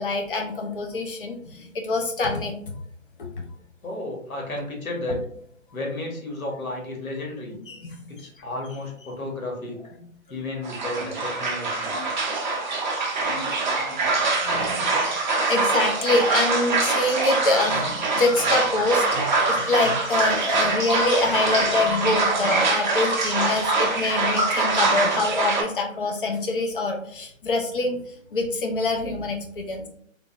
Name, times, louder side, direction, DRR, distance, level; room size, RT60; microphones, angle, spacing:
voice 1, 0.0-2.5 3.2-3.3 7.5-8.0 11.0-11.1 11.9-12.1 13.2-15.0 15.5-28.0 28.3-29.9, left 2 dB, 40° left, 2 dB, 0.5 m, -25 dB
voice 2, 3.8-5.2 5.7-7.5 8.1-9.8 10.3-11.9 27.8-27.9, left 2 dB, 80° left, 0 dB, 1.2 m, -32 dB
sound 1, 10.6-25.6, right 3 dB, 35° right, 0.5 m, -24 dB
3.2 x 2.0 x 2.4 m, 0.65 s
figure-of-eight pair, 140°, 41 cm